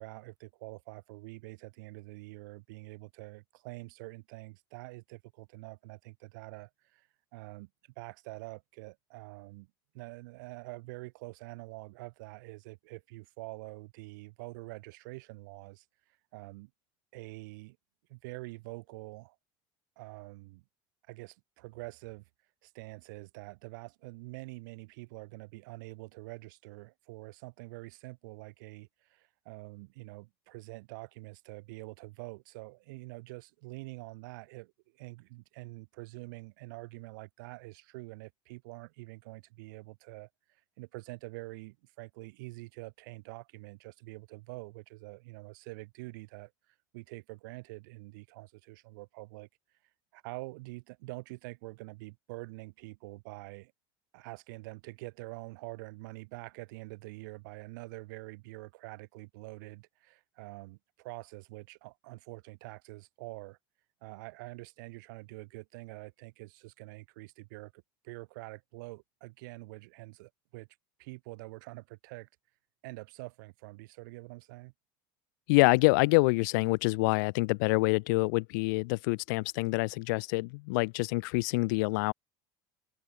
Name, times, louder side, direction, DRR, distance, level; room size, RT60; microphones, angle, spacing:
voice 1, 0.0-7.7 8.0-15.9 16.3-16.7 17.1-17.8 18.1-19.4 20.0-20.6 21.1-22.2 22.6-49.5 50.1-53.7 54.1-63.6 64.0-70.7 71.0-72.3 72.8-74.7, right 24 dB, 90° right, 3.5 m, -46 dB
voice 2, 75.5-82.1, left 27 dB, 85° left, 0.5 m, -26 dB
cardioid pair, 155°, 10 cm